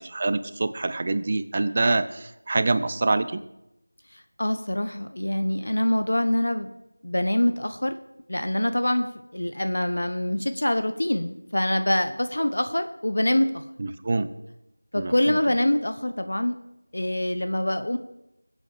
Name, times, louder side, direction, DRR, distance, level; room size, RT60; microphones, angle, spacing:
voice 1, 0.0-3.4 13.8-14.3 14.9-15.4, right 3 dB, 25° right, 12 dB, 0.7 m, -25 dB
voice 2, 4.1-6.7 7.0-7.9 8.3-13.6 14.9-16.5 16.9-18.0, left 1 dB, 65° left, 8 dB, 1.2 m, -25 dB
20.5 x 8.3 x 6.5 m, 0.87 s
figure-of-eight pair, 175°, 0 cm